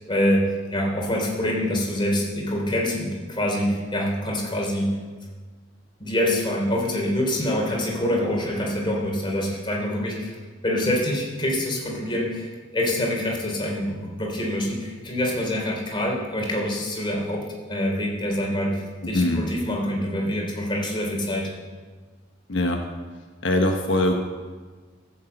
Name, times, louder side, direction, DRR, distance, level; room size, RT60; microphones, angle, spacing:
voice 1, 0.1-4.9 6.0-10.4 10.6-21.5, left 1 dB, 25° left, -1 dB, 3.2 m, -25 dB
voice 2, 19.1-19.5 22.5-22.8 23.4-24.1, left 1 dB, 75° left, 2 dB, 1.1 m, -22 dB
15.0 x 7.1 x 7.8 m, 1.4 s
head